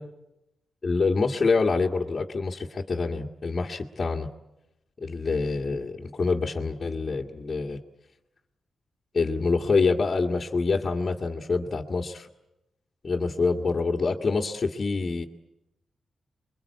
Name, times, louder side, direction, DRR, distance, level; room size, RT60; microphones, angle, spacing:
voice 1, 0.8-4.3 5.0-7.8 9.1-12.3 13.0-15.2, left 4 dB, 40° left, -3 dB, 1.8 m, -26 dB
28.5 x 22.5 x 8.3 m, 0.91 s
cardioid pair, 90°, 0 cm